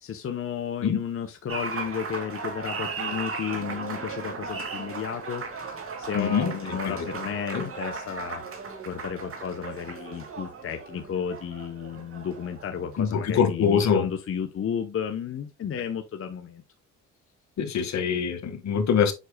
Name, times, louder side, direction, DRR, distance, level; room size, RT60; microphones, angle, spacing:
voice 1, 0.0-5.7 6.0-8.4 8.8-16.6, left 8 dB, 45° left, 0.9 m, -33 dB
Applause, 1.5-13.2, right 4 dB, 45° right, 2.6 m, -36 dB
voice 2, 6.1-7.1 7.5-7.6 13.0-14.0 17.6-19.1, left 7 dB, 65° left, 1.9 m, -24 dB
7.9 x 6.2 x 2.3 m
cardioid pair, 90°, 30 cm